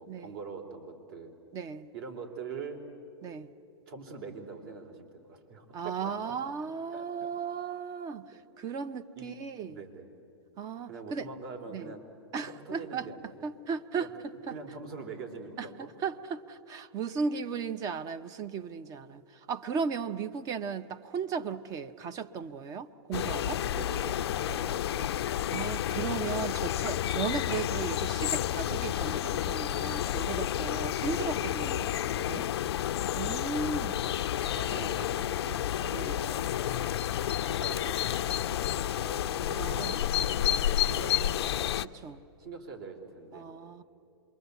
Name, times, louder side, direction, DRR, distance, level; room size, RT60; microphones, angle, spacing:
voice 1, 0.0-1.3 1.9-2.8 3.9-6.0 6.9-7.3 8.3-8.4 9.2-9.3 9.7-10.1 10.9-13.5 14.0-14.1 14.5-15.9 17.3-17.5 23.6-25.2 33.9-34.1 34.5-36.9 37.5-41.7 42.4-43.5, right 4 dB, 55° right, 4 dB, 3.6 m, -44 dB
voice 2, 1.5-1.9 3.2-3.5 5.7-9.8 10.6-11.3 11.7-11.9 12.3-13.1 13.4-14.1 14.5-14.6 15.6-15.7 16.0-23.6 25.5-31.9 32.2-32.5 33.2-34.0 35.9-36.2 39.3-40.0 41.8-42.2 43.3-43.8, right 6 dB, 25° right, 12 dB, 0.8 m, -36 dB
sound 1, 23.1-41.8, left 12 dB, 70° left, 0.6 m, -30 dB
26.5 x 22.5 x 8.2 m, 2.8 s
hypercardioid pair, 140°, 14 cm